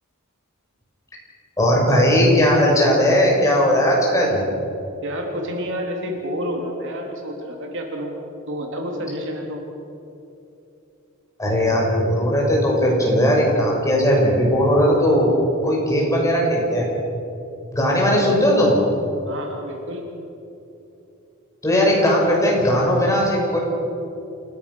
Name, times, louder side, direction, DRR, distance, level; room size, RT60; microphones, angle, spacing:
voice 1, 1.6-4.4 11.4-15.3 15.6-16.8 17.7-18.8 21.6-23.6, equal, 15° left, -3 dB, 6.4 m, -18 dB
voice 2, 5.0-8.1 8.5-9.6 19.2-20.0, equal, 60° right, 1 dB, 3.4 m, -29 dB
28.5 x 17.5 x 6.4 m, 2.8 s
head